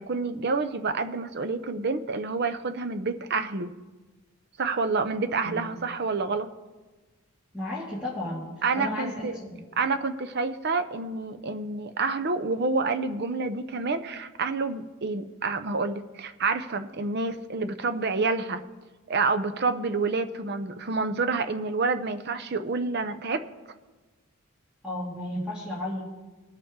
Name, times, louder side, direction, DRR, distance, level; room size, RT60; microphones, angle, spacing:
voice 1, 0.0-3.7 4.6-6.5 8.6-9.4 9.8-18.6 19.1-23.4, right 4 dB, 50° right, 9 dB, 0.6 m, -28 dB
voice 2, 7.5-8.5 8.8-9.6 24.8-26.0, left 1 dB, 5° right, -6 dB, 2.0 m, -33 dB
20.0 x 7.0 x 3.7 m, 1.2 s
head